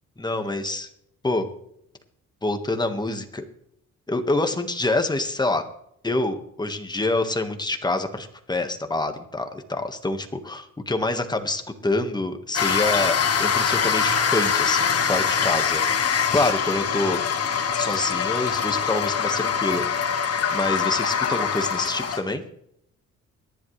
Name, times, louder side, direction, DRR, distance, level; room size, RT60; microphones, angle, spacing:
voice 1, 0.2-0.9 1.2-1.5 2.4-3.4 4.1-5.6 6.0-17.2 17.7-19.9 20.5-22.4, left 2 dB, 15° left, 6 dB, 1.6 m, -26 dB
sound 1, 12.5-22.2, left 7 dB, 55° left, 1.7 m, -23 dB
23.0 x 10.5 x 3.3 m, 0.75 s
cardioid pair, 90°, 30 cm